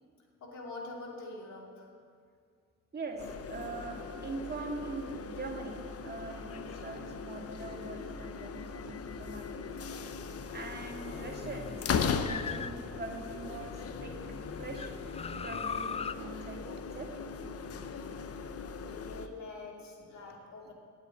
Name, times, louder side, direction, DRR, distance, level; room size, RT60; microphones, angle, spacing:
voice 1, 0.4-1.9 18.8-20.7, left 2 dB, 70° left, -1 dB, 2.8 m, -45 dB
voice 2, 2.9-9.6 10.5-14.1 14.5-14.9 15.4-17.1, right 3 dB, 35° right, 1 dB, 2.2 m, -42 dB
sound 1, 3.2-19.3, left 5 dB, 55° left, 0.8 m, -39 dB
sound 2, 9.9-13.4 13.9-16.1, left 6 dB, 20° left, 0.3 m, -41 dB
9.0 x 8.3 x 9.3 m, 2.2 s
cardioid pair, 75°, 29 cm